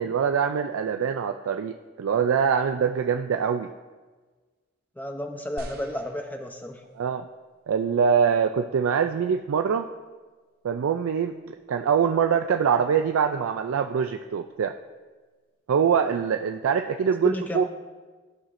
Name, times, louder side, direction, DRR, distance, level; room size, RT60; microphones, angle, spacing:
voice 1, 0.0-3.7 7.0-7.3 7.7-9.9 10.6-14.7 15.7-17.6, right 7 dB, 85° right, 5 dB, 0.4 m, -24 dB
voice 2, 5.0-6.8 17.2-17.6, equal, 10° left, 4 dB, 0.6 m, -32 dB
sound 1, 5.6-7.1 7.8-7.9, right 1 dB, 45° right, 0.7 m, -44 dB
13.5 x 5.7 x 2.5 m, 1.3 s
head